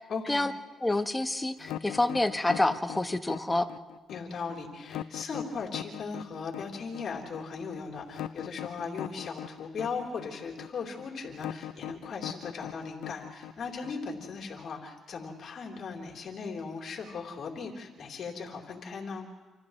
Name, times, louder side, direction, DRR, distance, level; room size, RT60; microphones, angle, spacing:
voice 1, 0.1-0.4 4.1-19.3, left 5 dB, 60° left, -1 dB, 3.9 m, -38 dB
voice 2, 0.8-3.7, left 2 dB, 15° left, 8 dB, 1.2 m, -27 dB
sound 1, 1.6-14.5, left 12 dB, 85° left, 0.5 m, -40 dB
29.0 x 27.5 x 3.3 m, 1.2 s
cardioid pair, 90°, 0 cm